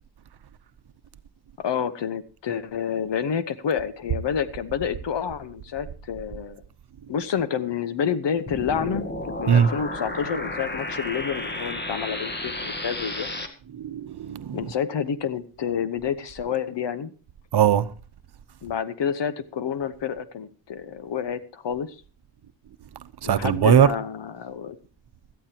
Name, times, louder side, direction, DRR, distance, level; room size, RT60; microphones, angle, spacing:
voice 1, 1.6-6.6 7.1-13.3 14.5-17.1 18.6-22.0 23.2-24.8, left 7 dB, 65° left, 1.2 m, -29 dB
sound 1, 8.5-13.5, left 1 dB, 20° left, 1.9 m, -32 dB
voice 2, 13.8-14.6 17.5-17.8 23.2-23.9, right 9 dB, 60° right, 0.9 m, -19 dB
17.5 x 13.0 x 2.9 m
cardioid pair, 100°, 46 cm